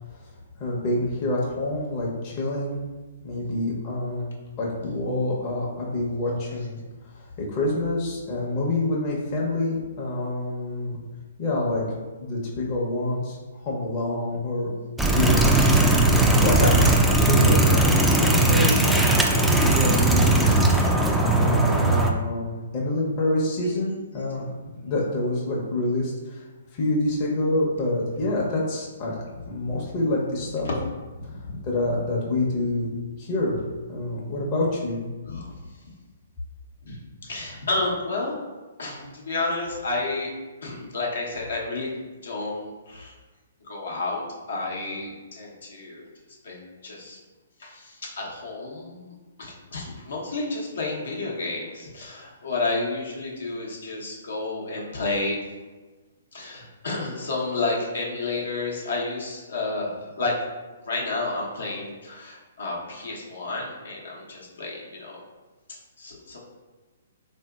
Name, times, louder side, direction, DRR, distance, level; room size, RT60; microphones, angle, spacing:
voice 1, 0.6-2.8 3.2-4.3 4.6-6.8 7.2-11.0 11.4-11.8 12.2-13.4 13.6-15.8 16.4-20.8 21.3-24.5 24.8-26.4 26.7-29.1 29.5-30.7 31.6-32.9 33.2-33.6 33.9-35.0, left 2 dB, 35° left, -4 dB, 0.7 m, -27 dB
sound 1, 15.0-22.1, right 2 dB, ahead, 0.3 m, -19 dB
voice 2, 31.3-31.6 35.2-35.5 36.8-38.4 38.8-40.3 40.6-42.0 42.2-43.1 43.6-46.0 46.4-47.2 47.6-55.4 56.3-60.3 60.8-65.2 66.0-66.4, left 3 dB, 75° left, -3 dB, 0.8 m, -31 dB
3.6 x 2.6 x 2.3 m, 1.3 s
hypercardioid pair, 130°, 0 cm